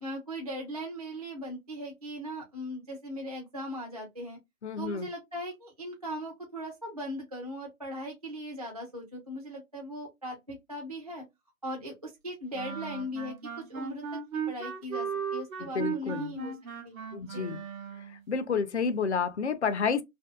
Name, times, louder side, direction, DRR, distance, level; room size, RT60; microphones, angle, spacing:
voice 1, 0.0-4.4 4.8-11.2 11.6-13.4 13.7-16.6 16.8-17.5, equal, 30° right, 0.4 m, -39 dB
voice 2, 4.6-5.1 15.6-16.3 17.1-17.6 18.3-20.0, left 5 dB, 55° left, 0.5 m, -30 dB
sound 1, 12.5-18.2, right 6 dB, 70° right, 0.8 m, -36 dB
2.6 x 2.2 x 2.3 m
figure-of-eight pair, 145°, 43 cm